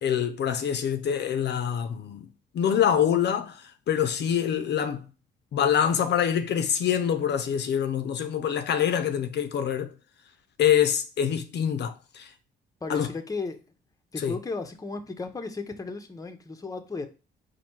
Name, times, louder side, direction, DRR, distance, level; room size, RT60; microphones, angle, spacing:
voice 1, 0.0-2.3 2.5-5.0 5.5-9.9 10.6-12.3 12.9-13.1 14.2-14.3, left 9 dB, 60° left, 0.6 m, -25 dB
voice 2, 12.8-13.6 14.1-17.1, left 3 dB, 15° left, 0.7 m, -35 dB
4.2 x 2.7 x 4.4 m
cardioid pair, 90°, 20 cm